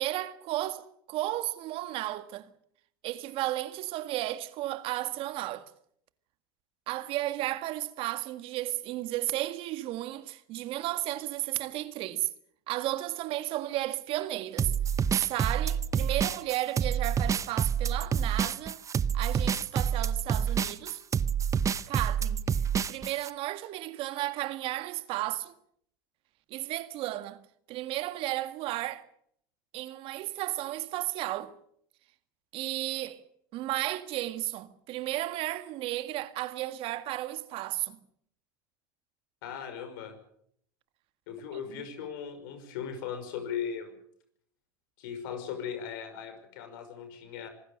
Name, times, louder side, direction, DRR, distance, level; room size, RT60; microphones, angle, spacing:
voice 1, 0.0-2.5 3.0-5.7 6.9-12.3 12.7-14.7 15.1-18.8 19.1-21.0 21.9-22.4 22.9-25.5 26.5-27.4 27.7-29.1 29.7-31.5 32.5-33.2 33.5-38.0, right 16 dB, 55° right, 1.8 m, -33 dB
sound 1, 14.6-23.3, right 7 dB, 30° right, 0.9 m, -28 dB
voice 2, 39.4-40.1 41.3-43.9 45.0-47.5, left 7 dB, 70° left, 5.7 m, -38 dB
26.0 x 19.5 x 6.7 m
hypercardioid pair, 85°, 11 cm